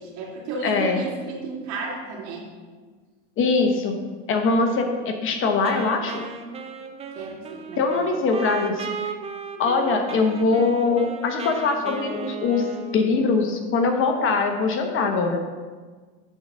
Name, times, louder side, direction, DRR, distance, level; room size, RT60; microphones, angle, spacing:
voice 1, 0.0-2.5 7.1-8.1, right 3 dB, 50° right, -2 dB, 2.5 m, -33 dB
voice 2, 0.6-1.0 3.4-4.0 4.3-6.2 7.8-9.1 9.6-12.7 12.9-15.4, left 4 dB, 35° left, 4 dB, 1.0 m, -22 dB
Wind instrument woodwind instrument, 5.6-13.6, right 5 dB, 15° right, 0.6 m, -35 dB
9.0 x 4.0 x 6.2 m, 1.4 s
supercardioid pair, 120°, 35 cm